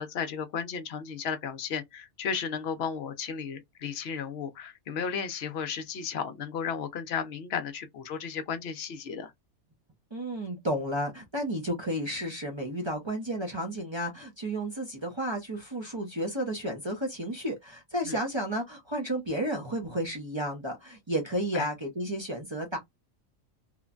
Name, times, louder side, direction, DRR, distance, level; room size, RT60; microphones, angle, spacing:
voice 1, 0.0-9.3 18.0-18.2 21.5-21.7, left 6 dB, 60° left, 0.7 m, -34 dB
voice 2, 10.1-22.8, right 1 dB, 35° right, 0.5 m, -32 dB
3.0 x 2.1 x 2.4 m
omnidirectional pair, 1.4 m